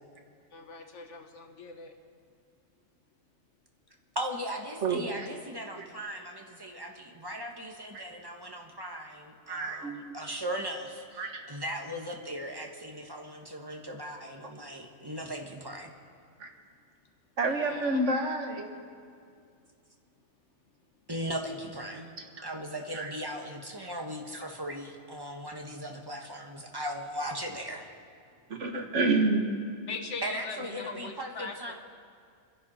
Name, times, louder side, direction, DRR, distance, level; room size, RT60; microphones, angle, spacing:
voice 1, 0.5-1.9 17.5-18.0 29.9-31.7, left 4 dB, 70° left, 4 dB, 1.5 m, -41 dB
voice 2, 4.1-16.0 21.1-22.1 22.4-27.9 30.2-31.7, equal, 20° right, 1 dB, 1.5 m, -38 dB
voice 3, 4.8-5.3 5.8-5.9 7.9-8.0 9.5-10.0 11.2-11.4 16.4-16.5 17.4-18.7 22.4-22.5 22.9-23.1 24.3-24.4 28.5-29.5, right 2 dB, 75° right, 4 dB, 1.7 m, -29 dB
27.0 x 10.5 x 4.3 m, 2.2 s
omnidirectional pair, 1.3 m